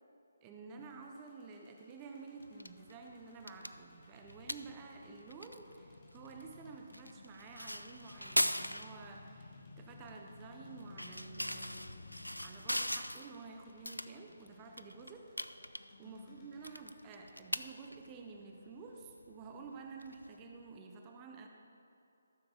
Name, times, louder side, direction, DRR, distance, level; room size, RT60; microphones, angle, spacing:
voice 1, 0.4-12.0 12.4-15.3 15.6-15.7 16.0-21.5, right 4 dB, 20° right, 2 dB, 0.6 m, -51 dB
sound 1, 0.8-18.9, left 2 dB, 25° left, 1.7 m, -64 dB
sound 2, 2.4-20.8, equal, 90° left, 0.4 m, -42 dB
Male speech man speaking / Motorcycle / Idling, 4.2-13.1, left 3 dB, 55° left, 0.8 m, -56 dB
13.5 x 7.0 x 4.1 m, 2.8 s
figure-of-eight pair, 145°, 0 cm